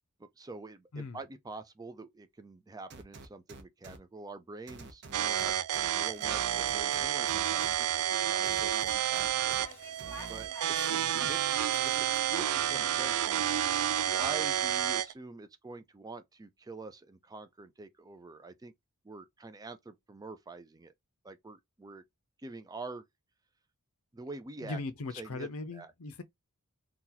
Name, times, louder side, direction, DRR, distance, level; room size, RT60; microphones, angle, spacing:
voice 1, 0.2-9.6 10.3-13.5 14.1-18.7 19.0-20.9 21.2-22.0 22.4-23.1 24.1-24.8 25.2-25.5 25.7-25.9, right 3 dB, 15° right, 0.4 m, -46 dB
sound 1, 2.9-4.0 4.7-5.9 6.2-7.7 8.4-9.6 10.0-10.5, right 4 dB, 55° right, 0.7 m, -48 dB
sound 2, 5.1-15.1, right 11 dB, 85° right, 0.4 m, -30 dB
sound 3, 6.0-12.5, left 1 dB, 10° left, 0.9 m, -53 dB
voice 2, 10.7-11.3 24.6-26.2, left 3 dB, 70° left, 0.6 m, -40 dB
2.9 x 2.3 x 3.8 m
head